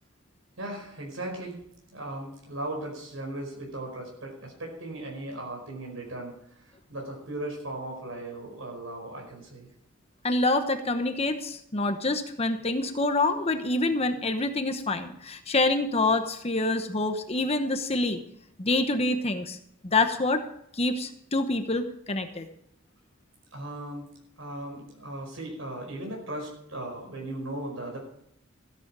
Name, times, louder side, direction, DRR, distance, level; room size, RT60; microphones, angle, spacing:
voice 1, 0.6-1.6 1.9-6.3 6.6-9.7 23.5-24.1 24.4-28.0, right 1 dB, 90° right, 0 dB, 5.0 m, -37 dB
voice 2, 10.2-18.2 18.6-19.6 19.8-20.4 20.7-22.5, left 2 dB, 30° left, 7 dB, 1.1 m, -26 dB
15.5 x 10.5 x 4.9 m, 0.72 s
head